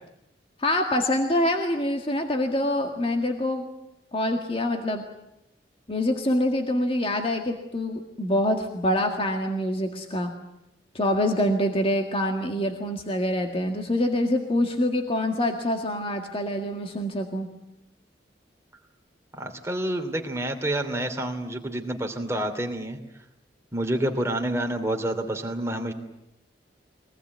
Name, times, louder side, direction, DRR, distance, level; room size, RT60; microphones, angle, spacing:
voice 1, 0.6-3.7 4.1-5.0 5.9-10.3 10.9-17.5, left 1 dB, 30° left, 4 dB, 1.9 m, -25 dB
voice 2, 19.3-23.0 23.7-25.9, right 1 dB, 15° right, 3 dB, 2.9 m, -28 dB
24.0 x 19.0 x 9.5 m, 0.86 s
head